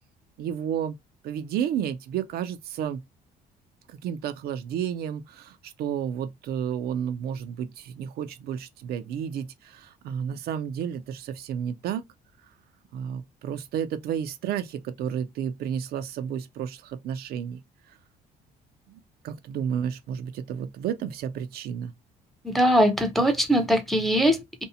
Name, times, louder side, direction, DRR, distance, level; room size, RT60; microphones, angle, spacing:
voice 1, 0.4-1.0 1.2-3.0 3.9-12.0 12.9-17.6 18.9-21.9, right 9 dB, 65° right, 0.4 m, -31 dB
voice 2, 22.4-24.7, equal, ahead, 0.5 m, -21 dB
2.6 x 2.0 x 2.6 m
cardioid pair, 110°, 17 cm